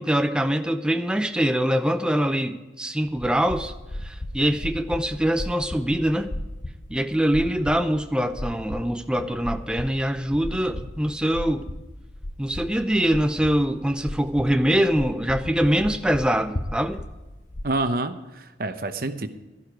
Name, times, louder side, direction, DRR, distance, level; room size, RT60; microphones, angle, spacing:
voice 1, 0.0-3.7 4.0-6.3 6.9-11.7 12.4-17.0, equal, 5° right, 8 dB, 0.5 m, -23 dB
sound 1, 3.0-17.7, left 1 dB, 45° left, 0.9 m, -36 dB
voice 2, 17.6-19.3, right 2 dB, 55° right, 9 dB, 0.9 m, -27 dB
12.0 x 11.5 x 4.8 m, 1.1 s
head